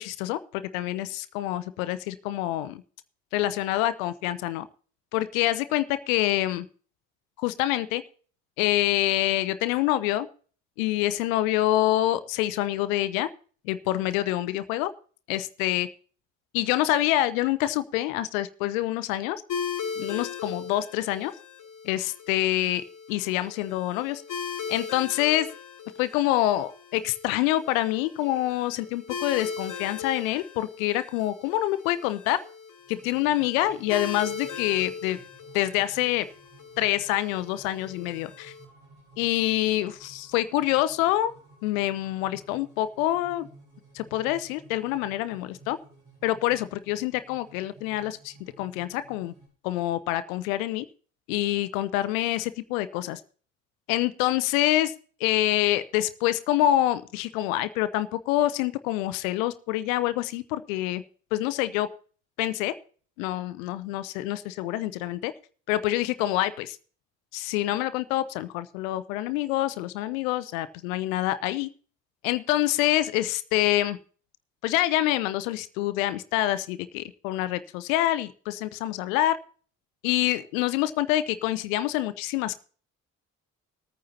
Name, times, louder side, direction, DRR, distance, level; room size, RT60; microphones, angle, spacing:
voice 1, 0.0-2.8 3.3-4.7 5.1-6.7 7.4-8.0 8.6-10.3 10.8-13.3 13.7-14.9 15.3-15.9 16.5-19.4 20.0-21.3 21.8-24.2 24.7-25.5 26.0-32.4 32.9-35.2 35.5-36.3 36.8-38.5 39.2-41.3 41.6-43.5 43.9-45.8 46.2-49.3 49.6-50.8 51.3-53.2 53.9-54.9 55.2-61.0 61.3-61.9 62.4-62.7 63.2-65.3 65.7-66.8 67.3-71.7 72.2-74.0 74.6-79.4 80.0-82.6, left 14 dB, 75° left, 15 dB, 0.6 m, -26 dB
sound 1, 19.5-38.6, left 6 dB, 50° left, 1.5 m, -39 dB
sound 2, 32.8-49.5, right 3 dB, 65° right, 7.5 m, -54 dB
20.0 x 9.2 x 2.8 m, 0.43 s
figure-of-eight pair, 40°, 41 cm